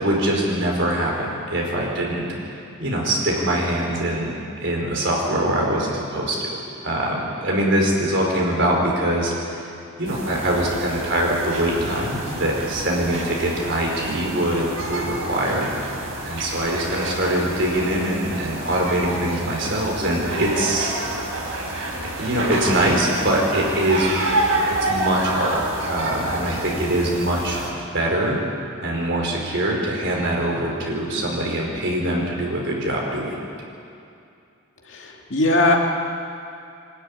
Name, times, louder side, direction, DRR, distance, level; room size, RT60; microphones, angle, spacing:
voice 1, 0.0-6.4 6.8-9.7 10.0-15.7 16.2-20.9 22.0-28.4 28.8-33.4, right 1 dB, 55° right, -2 dB, 4.9 m, -23 dB
sound 1, 10.0-27.7, right 1 dB, 70° right, 4.7 m, -28 dB
voice 2, 34.9-35.8, left 2 dB, 55° left, 0 dB, 2.6 m, -19 dB
23.5 x 13.0 x 10.0 m, 2.5 s
head